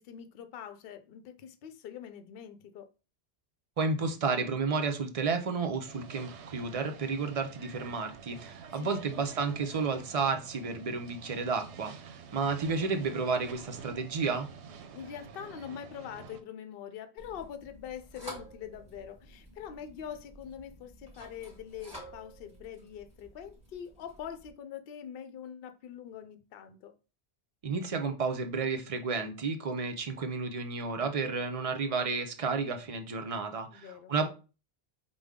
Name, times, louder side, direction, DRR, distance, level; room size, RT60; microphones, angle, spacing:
voice 1, 0.0-2.9 8.7-9.1 12.7-13.1 14.9-26.9 33.7-34.1, left 9 dB, 65° left, 8 dB, 0.7 m, -44 dB
voice 2, 3.8-14.5 27.6-34.3, right 4 dB, 40° right, 6 dB, 0.6 m, -32 dB
sound 1, 5.8-16.4, right 6 dB, 80° right, 0.9 m, -48 dB
sound 2, 17.2-24.5, right 1 dB, 5° right, 1.3 m, -51 dB
5.0 x 2.2 x 3.5 m, 0.32 s
omnidirectional pair, 1.1 m